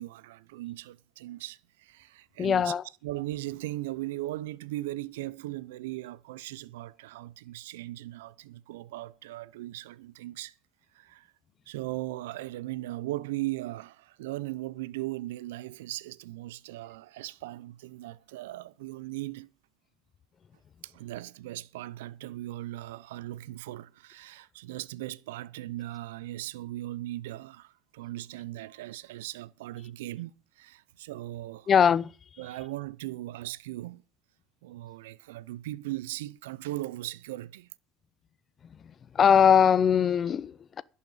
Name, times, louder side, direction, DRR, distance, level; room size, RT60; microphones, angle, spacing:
voice 1, 0.0-10.5 10.9-11.3 11.7-19.5 20.8-31.7 32.4-34.0 34.6-37.7, right 16 dB, 85° right, 0.5 m, -38 dB
voice 2, 2.4-2.8 31.7-32.1 39.1-40.8, left 8 dB, 40° left, 0.7 m, -21 dB
11.0 x 7.0 x 8.5 m
hypercardioid pair, 75°, 0 cm